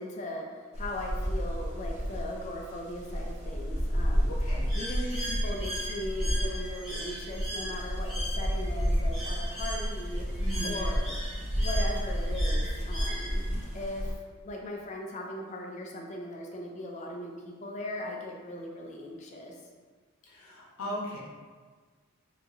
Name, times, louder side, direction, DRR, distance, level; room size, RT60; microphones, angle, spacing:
voice 1, 0.0-4.3 4.7-10.2 10.6-11.2 11.6-13.4 13.7-14.1 14.4-19.6, left 1 dB, 35° left, 0 dB, 0.3 m, -38 dB
sound 1, 0.7-14.1, equal, 30° right, 0.5 m, -31 dB
voice 2, 4.3-4.7 10.3-10.7 20.2-21.2, equal, 85° left, -5 dB, 0.8 m, -38 dB
Bird, 4.7-13.6, equal, ahead, 1.0 m, -39 dB
2.8 x 2.3 x 2.4 m, 1.5 s
head